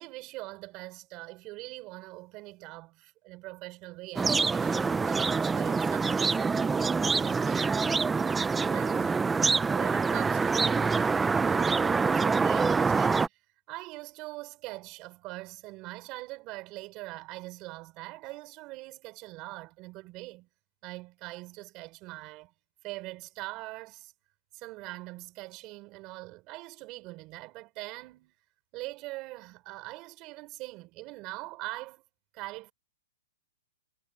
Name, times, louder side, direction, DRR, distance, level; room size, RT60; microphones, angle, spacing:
voice 1, 0.0-7.9 8.7-13.4 13.7-20.5 20.8-22.5 22.8-24.1 24.5-28.4 28.7-32.0 32.3-32.7, right 21 dB, 25° right, 6.2 m, -43 dB
sound 1, 4.2-13.3, right 4 dB, 5° right, 0.5 m, -26 dB
hypercardioid pair, 170°, 0 cm